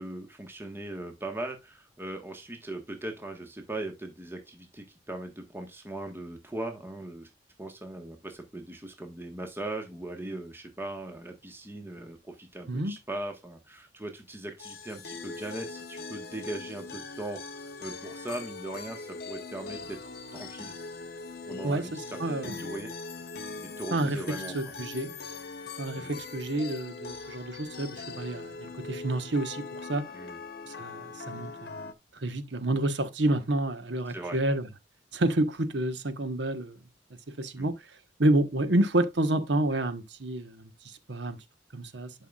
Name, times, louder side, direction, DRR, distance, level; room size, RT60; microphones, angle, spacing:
voice 1, 0.0-7.3 7.6-20.0 20.3-20.7 21.5-22.9 23.6-24.5 26.0-26.2 30.1-30.4 34.1-34.4 37.6-37.7, right 1 dB, 15° right, 1.4 m, -39 dB
sound 1, 14.6-31.9, left 4 dB, 60° left, 1.0 m, -41 dB
voice 2, 21.6-22.6 23.9-24.2 24.5-25.1 25.8-30.0 30.8-31.7 32.2-34.7 35.1-36.8 37.4-37.7 38.2-41.4 41.7-42.1, right 1 dB, 75° right, 1.2 m, -29 dB
11.5 x 5.7 x 2.4 m
head